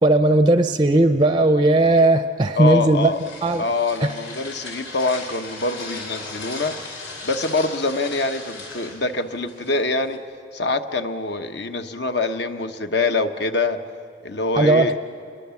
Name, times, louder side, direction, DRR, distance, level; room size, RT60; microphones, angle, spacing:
voice 1, 0.0-3.1 3.4-3.7 4.0-4.1 14.6-15.0, right 2 dB, 25° right, 9 dB, 0.5 m, -17 dB
voice 2, 2.5-3.2 3.6-6.8 7.2-10.2 10.5-13.8 14.2-15.0, left 3 dB, 60° left, 8 dB, 1.1 m, -24 dB
sound 1, 2.7-10.2, left 3 dB, 85° left, 3.9 m, -37 dB
28.5 x 22.5 x 7.1 m, 2.3 s
head